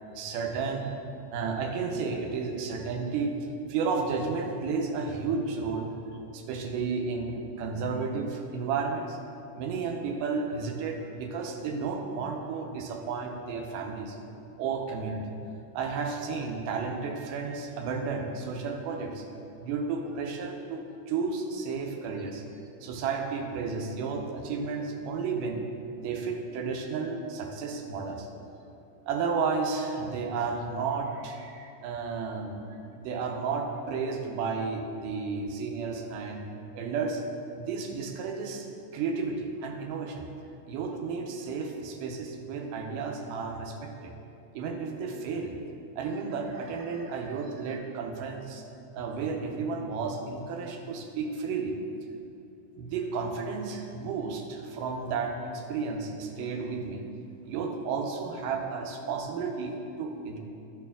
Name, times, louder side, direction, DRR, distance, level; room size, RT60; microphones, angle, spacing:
voice 1, 0.2-0.9 1.3-3.3 3.7-6.1 6.3-9.2 9.5-14.2 14.6-15.2 15.7-19.3 19.6-22.4 22.8-25.7 26.0-28.3 29.1-36.4 36.7-37.2 37.5-38.7 38.9-40.3 40.7-44.1 44.5-45.6 46.0-48.6 48.9-51.7 52.8-57.0 57.5-60.4, right 5 dB, 85° right, 2 dB, 2.3 m, -32 dB
13.5 x 4.6 x 3.6 m, 2.7 s
omnidirectional pair, 3.8 m